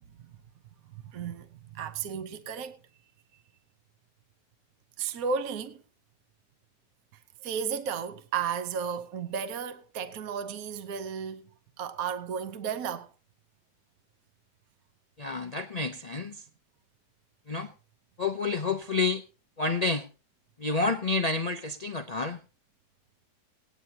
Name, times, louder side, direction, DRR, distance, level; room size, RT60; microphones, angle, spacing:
voice 1, 0.9-2.8 5.0-5.8 7.4-11.5 11.8-13.1, right 6 dB, 60° right, 1.2 m, -34 dB
voice 2, 15.2-16.4 17.5-17.7 18.2-19.2 19.6-20.1 20.6-22.4, left 3 dB, 85° left, 0.3 m, -29 dB
18.5 x 10.0 x 2.8 m
omnidirectional pair, 1.8 m